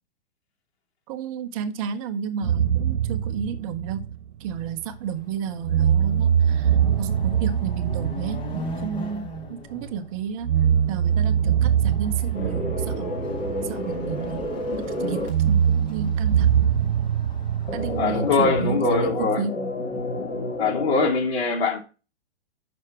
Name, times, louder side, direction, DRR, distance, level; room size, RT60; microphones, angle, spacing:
voice 1, 1.1-4.1 4.4-13.3 13.6-16.7 17.7-19.6, right 7 dB, 30° right, 0.7 m, -32 dB
sound 1, 2.4-5.2 5.6-9.9 10.4-14.5 15.3-19.2, right 9 dB, 85° right, 0.9 m, -23 dB
Chatter / Car passing by / Motorcycle, 4.6-4.7 5.1-18.7, left 1 dB, 15° left, 1.0 m, -41 dB
sound 2, 12.3-15.3 17.7-21.1, left 1 dB, 30° left, 2.4 m, -30 dB
voice 2, 18.0-19.4 20.6-21.8, left 4 dB, 65° left, 2.8 m, -22 dB
6.4 x 6.0 x 4.3 m
hypercardioid pair, 140°, 33 cm